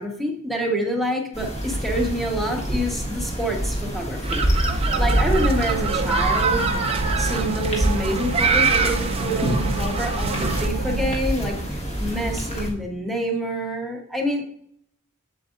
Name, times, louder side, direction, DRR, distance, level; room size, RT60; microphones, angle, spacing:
voice 1, 0.0-4.7 4.9-14.4, equal, ahead, 1 dB, 1.2 m, -27 dB
sound 1, 1.3-12.7, equal, 30° left, 1.7 m, -27 dB
sound 2, 4.2-10.7, right 3 dB, 25° right, 0.7 m, -24 dB
sound 3, 4.9-11.2, right 7 dB, 65° right, 0.3 m, -32 dB
7.7 x 7.6 x 2.6 m, 0.65 s
head